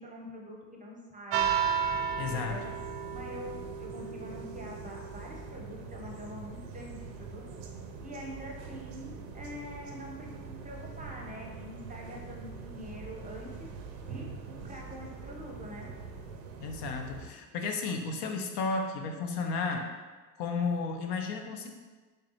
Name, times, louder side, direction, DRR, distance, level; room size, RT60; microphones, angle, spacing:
voice 1, 0.0-1.7 2.3-2.7 3.1-7.5 8.0-13.7 14.1-15.9, equal, 15° right, -1 dB, 0.7 m, -45 dB
sound 1, 1.3-17.3, right 7 dB, 80° right, 0.6 m, -38 dB
voice 2, 2.2-2.6 16.6-19.9 20.4-21.7, left 4 dB, 55° left, 4 dB, 0.5 m, -33 dB
3.5 x 3.3 x 2.8 m, 1.3 s
hypercardioid pair, 65°, 49 cm